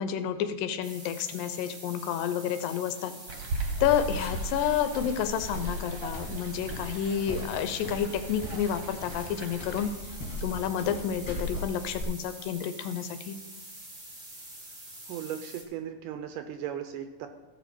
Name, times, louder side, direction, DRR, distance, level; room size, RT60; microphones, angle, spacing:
voice 1, 0.0-3.1 3.8-9.9 10.4-13.4, left 9 dB, 80° left, 9 dB, 2.3 m, -30 dB
sound 1, 0.8-15.6, right 1 dB, 40° right, 0.7 m, -46 dB
sound 2, 3.3-9.9, right 3 dB, 65° right, 1.7 m, -38 dB
sound 3, 3.9-12.0, left 1 dB, 35° left, 2.2 m, -40 dB
voice 2, 15.1-17.3, right 9 dB, 80° right, 7 dB, 2.0 m, -37 dB
15.5 x 5.8 x 4.4 m, 1.1 s
omnidirectional pair, 4.2 m